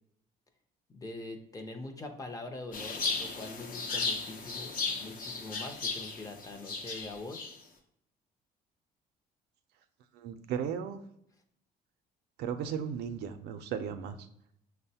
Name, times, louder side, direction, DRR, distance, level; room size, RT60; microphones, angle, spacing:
voice 1, 0.9-7.5, left 2 dB, 20° left, 4 dB, 0.5 m, -43 dB
sound 1, 2.7-7.5, left 4 dB, 55° left, 0.7 m, -35 dB
voice 2, 10.1-11.0 12.4-14.3, right 8 dB, 75° right, 8 dB, 0.4 m, -36 dB
6.0 x 2.1 x 2.7 m, 0.72 s
cardioid pair, 110°, 17 cm